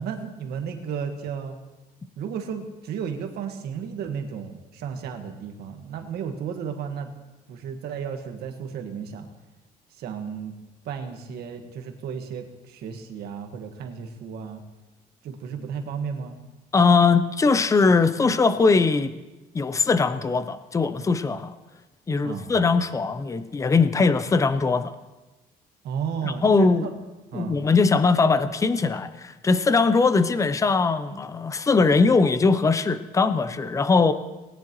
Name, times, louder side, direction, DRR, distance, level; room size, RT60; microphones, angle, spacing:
voice 1, 0.0-1.6 2.2-7.1 7.5-9.3 9.9-10.5 10.8-14.6 15.2-16.4 22.2-22.6 25.8-27.0 27.3-27.6, right 7 dB, 70° right, 4 dB, 1.6 m, -33 dB
voice 2, 16.7-19.1 19.5-21.5 22.1-24.9 26.4-26.9 27.3-34.1, left 4 dB, 20° left, 12 dB, 0.6 m, -20 dB
19.5 x 10.5 x 3.1 m, 1.1 s
cardioid pair, 110°, 17 cm